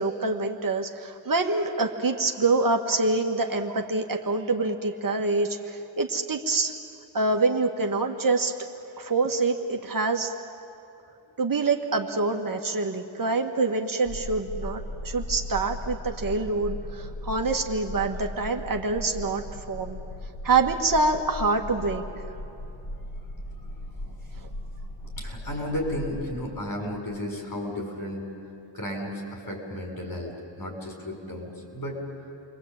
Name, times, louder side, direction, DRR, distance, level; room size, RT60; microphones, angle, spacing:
voice 1, 0.0-6.8 7.1-8.5 9.0-10.3 11.4-20.0 20.4-22.0 24.3-24.5, right 3 dB, 45° right, 3 dB, 1.8 m, -26 dB
sound 1, 14.0-26.3, left 1 dB, 75° left, 7.7 m, -37 dB
voice 2, 25.2-28.3 28.7-32.0, left 1 dB, 50° left, 1 dB, 7.2 m, -33 dB
29.0 x 23.0 x 8.9 m, 2.9 s
wide cardioid pair, 105°, 45 cm